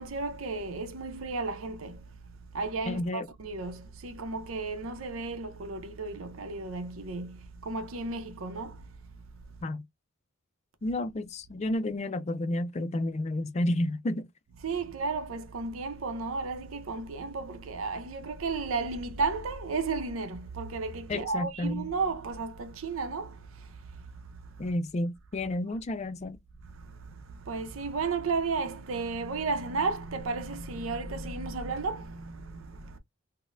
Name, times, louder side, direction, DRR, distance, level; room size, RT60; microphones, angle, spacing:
voice 1, 0.0-9.0 14.6-24.6 26.8-33.0, right 4 dB, 90° right, 0.6 m, -34 dB
voice 2, 2.9-3.3 9.6-9.8 10.8-14.3 21.1-21.9 24.6-26.4, left 1 dB, 35° left, 0.4 m, -31 dB
3.9 x 2.1 x 2.5 m
head